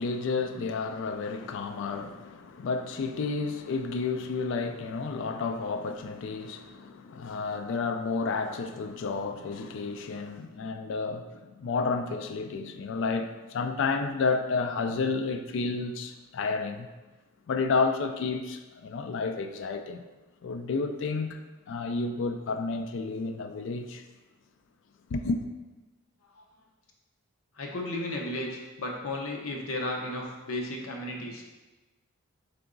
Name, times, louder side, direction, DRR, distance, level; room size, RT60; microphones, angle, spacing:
voice 1, 0.0-16.9 17.5-20.0 20.4-21.4 21.7-24.0 25.1-25.4, left 4 dB, 60° left, 0.3 m, -31 dB
voice 2, 27.6-31.4, left 1 dB, 75° left, 0.7 m, -34 dB
3.8 x 3.4 x 3.7 m
head